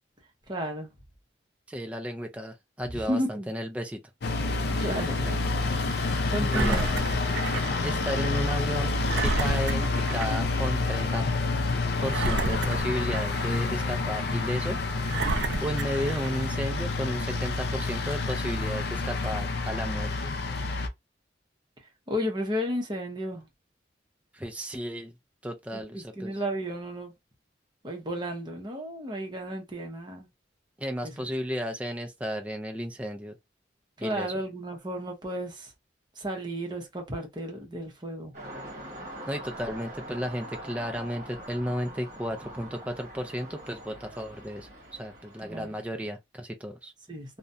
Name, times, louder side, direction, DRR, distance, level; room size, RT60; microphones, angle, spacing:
voice 1, 0.5-0.9 3.1-3.5 4.7-5.4 5.8-6.9 22.1-23.5 25.7-27.1 27.8-30.3 31.0-31.2 34.0-35.7 36.2-38.3 45.5-45.7 47.1-47.4, equal, 25° right, 0.7 m, -33 dB
voice 2, 1.7-4.0 6.4-6.8 7.8-11.2 12.0-14.8 15.6-20.3 24.3-25.2 25.4-26.3 30.8-33.4 34.0-34.3 39.3-44.7 45.0-46.9, equal, 5° right, 0.3 m, -33 dB
sound 1, 4.2-20.9, left 3 dB, 60° left, 0.4 m, -28 dB
Engine, 6.5-7.8 8.2-8.3 9.1-10.5 10.9-11.0 12.1-13.6 14.2-14.3 15.1-16.5 17.2-17.3, right 3 dB, 75° right, 0.5 m, -31 dB
sound 2, 38.3-46.0, right 1 dB, 45° right, 1.0 m, -43 dB
2.4 x 2.1 x 2.5 m
head